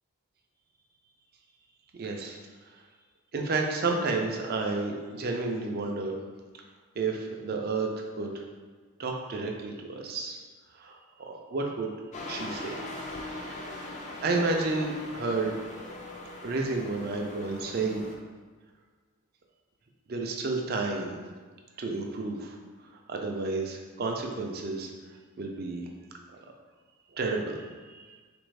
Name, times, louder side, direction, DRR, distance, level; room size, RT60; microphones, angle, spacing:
voice 1, 2.0-2.4 3.3-6.1 7.0-7.9 8.2-8.3 9.0-10.4 10.8-10.9 11.2-11.9 12.3-12.8 13.5-13.9 14.2-15.5 16.4-18.0 20.1-21.2 21.8-22.6 23.1-24.9 25.4-25.9 27.1-28.2, right 3 dB, 45° right, 2 dB, 0.4 m, -31 dB
sound 1, 12.1-18.2, left 2 dB, 30° left, 0.3 m, -40 dB
3.9 x 2.5 x 3.2 m, 1.4 s
head